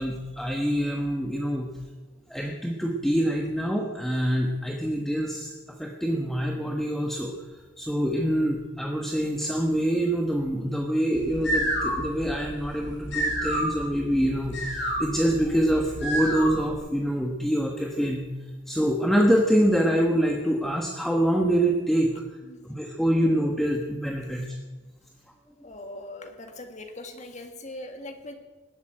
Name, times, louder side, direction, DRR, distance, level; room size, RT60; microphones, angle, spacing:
voice 1, 0.0-1.7 2.3-7.3 7.8-18.2 18.7-22.1 22.6-24.5, equal, ahead, 1 dB, 1.2 m, -25 dB
sound 1, 11.2-16.8, right 1 dB, 60° left, 5.5 m, -30 dB
voice 2, 22.4-22.8 25.6-28.4, left 1 dB, 35° left, 5 dB, 1.8 m, -41 dB
19.0 x 8.3 x 8.8 m, 1.3 s
head